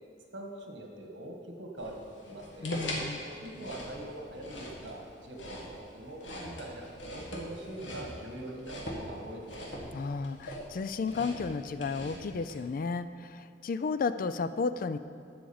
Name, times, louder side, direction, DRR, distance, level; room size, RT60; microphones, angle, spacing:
voice 1, 0.3-2.0 2.2-2.7 3.2-9.9, right 1 dB, 75° right, 1 dB, 1.7 m, -43 dB
sound 1, 1.8-12.5, equal, 75° left, 1.8 m, -42 dB
voice 2, 2.6-3.2 9.9-15.0, left 4 dB, 50° left, 12 dB, 0.4 m, -33 dB
12.5 x 5.1 x 7.0 m, 2.3 s
head